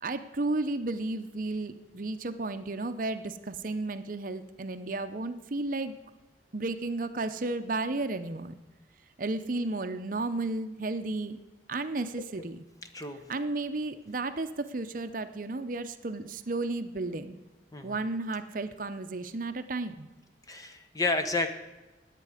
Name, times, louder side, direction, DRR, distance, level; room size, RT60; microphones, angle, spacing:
voice 1, 0.0-5.9 6.5-8.5 9.2-11.4 11.7-12.6 13.3-17.4 17.8-20.1, right 2 dB, 50° right, 9 dB, 0.7 m, -33 dB
voice 2, 20.5-21.5, left 3 dB, 20° left, 7 dB, 1.1 m, -30 dB
20.5 x 8.4 x 5.0 m, 1.1 s
head